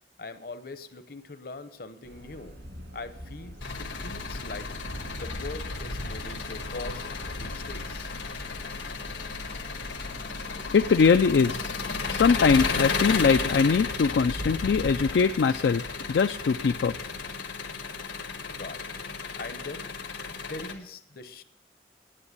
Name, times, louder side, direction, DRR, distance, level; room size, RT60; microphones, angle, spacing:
voice 1, 0.2-2.6 2.9-4.7 5.1-8.1 18.5-19.0 19.4-19.9 20.3-21.4, left 3 dB, 55° left, 11 dB, 0.8 m, -42 dB
sound 1, 2.0-17.4, equal, 75° right, 2.7 m, -47 dB
Engine, 3.6-20.7, left 4 dB, 90° left, 1.6 m, -33 dB
voice 2, 10.7-11.7 12.1-15.8 16.1-16.9, left 5 dB, 70° left, 8 dB, 0.4 m, -22 dB
9.9 x 8.6 x 8.0 m, 0.77 s
head